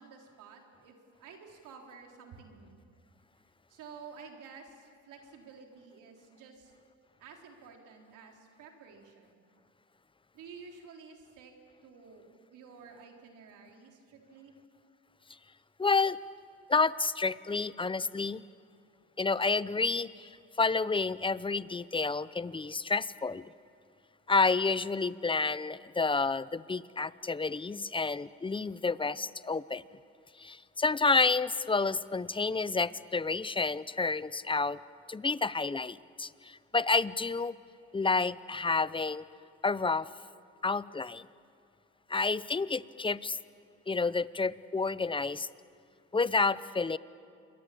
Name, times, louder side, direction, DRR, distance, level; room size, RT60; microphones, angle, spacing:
voice 1, 0.0-2.8 3.7-6.7 7.2-9.4 10.3-11.5 11.8-14.5, right 5 dB, 90° right, 2 dB, 3.9 m, -51 dB
voice 2, 15.8-16.2 16.7-18.4 19.2-23.4 24.3-29.8 30.4-34.8 35.1-37.5 37.9-39.2 39.6-40.1 40.6-41.3 42.1-43.4 43.9-45.5 46.1-47.0, left 4 dB, 15° left, 17 dB, 0.7 m, -29 dB
28.0 x 22.5 x 8.6 m, 2.4 s
cardioid pair, 90°, 30 cm